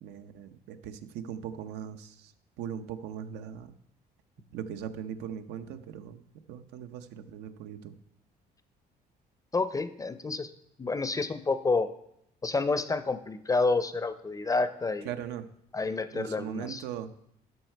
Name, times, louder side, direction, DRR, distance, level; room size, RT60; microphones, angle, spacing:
voice 1, 0.0-1.0 1.2-2.1 2.6-3.7 4.5-6.2 6.5-7.9 15.1-15.4 16.1-17.1, right 9 dB, 85° right, 9 dB, 0.8 m, -39 dB
voice 2, 9.5-10.5 10.8-11.9 12.4-15.2 15.7-16.8, left 3 dB, 20° left, 12 dB, 0.5 m, -29 dB
12.5 x 5.6 x 4.5 m, 0.74 s
cardioid pair, 110°, 17 cm